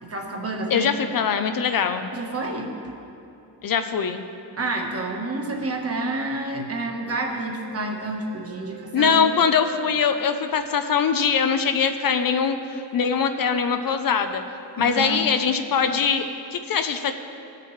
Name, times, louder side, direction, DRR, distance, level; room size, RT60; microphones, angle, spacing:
voice 1, 0.0-0.9 2.1-2.7 4.5-9.1 14.8-15.2, right 2 dB, 35° right, 1 dB, 1.3 m, -29 dB
voice 2, 0.7-2.1 3.6-4.2 8.9-14.4 14.8-17.1, left 6 dB, 55° left, 8 dB, 0.6 m, -22 dB
sound 1, 7.4-15.0, right 3 dB, 60° right, 1.6 m, -46 dB
17.0 x 6.7 x 3.2 m, 2.8 s
wide cardioid pair, 130°, 42 cm